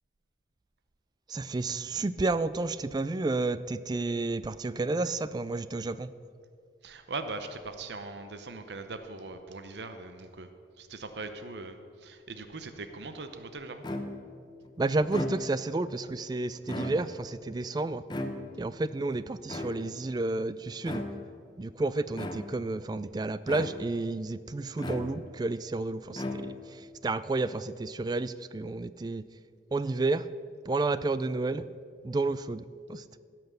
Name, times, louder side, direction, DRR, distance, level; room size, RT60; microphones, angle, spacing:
voice 1, 1.3-6.1 14.8-18.0 18.5-21.0 21.6-29.2 29.7-30.3 30.6-31.7 32.0-33.2, right 2 dB, 25° right, 15 dB, 0.3 m, -31 dB
voice 2, 6.8-10.5 10.8-13.8, right 3 dB, 75° right, 8 dB, 0.8 m, -40 dB
sound 1, 13.8-14.4 15.0-15.7 16.6-17.3 18.1-18.8 19.5-20.1 20.8-21.4 22.1-22.7 23.5-24.1 24.8-25.5 26.1-26.8, left 1 dB, 25° left, 0.8 m, -37 dB
16.0 x 6.0 x 6.8 m, 2.3 s
head